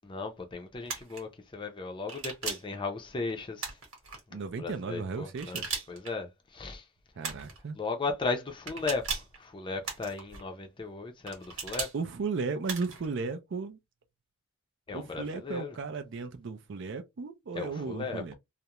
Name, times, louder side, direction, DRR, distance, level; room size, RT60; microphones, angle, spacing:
voice 1, 0.0-3.8 4.3-6.9 7.7-11.9 14.9-15.8 17.5-18.3, left 4 dB, 25° left, 0.5 m, -36 dB
sound 1, 0.9-1.2 2.1-2.7 3.6-4.2 5.4-6.1 7.2-7.6 8.7-9.4 9.8-10.4 11.3-11.9 12.7-13.1, right 5 dB, 85° right, 1.1 m, -37 dB
voice 2, 4.3-5.8 7.2-7.8 11.9-13.8 14.9-18.3, right 4 dB, 60° right, 0.4 m, -35 dB
2.4 x 2.1 x 2.9 m
head